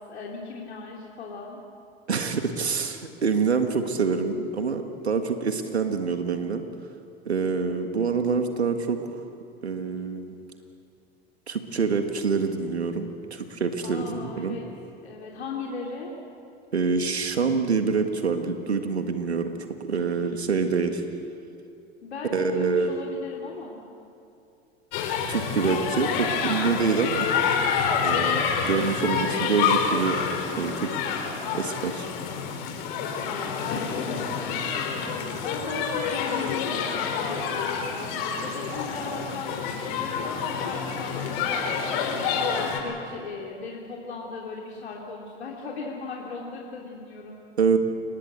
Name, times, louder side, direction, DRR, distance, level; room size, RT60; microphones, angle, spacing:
voice 1, 0.0-1.6 13.8-14.6 15.0-16.1 22.0-23.8 33.3-39.5 40.0-47.4, left 4 dB, 80° left, -2 dB, 3.2 m, -37 dB
voice 2, 2.1-6.7 7.3-9.0 9.6-10.3 11.5-14.6 16.7-19.5 19.8-21.0 22.2-23.0 25.3-27.3 28.0-30.2 30.6-31.0 31.5-32.1 47.6-47.8, right 5 dB, 90° right, 6 dB, 1.7 m, -26 dB
sound 1, 24.9-42.8, left 6 dB, 65° left, 4.2 m, -28 dB
29.0 x 20.0 x 8.2 m, 2.6 s
figure-of-eight pair, 75°, 32 cm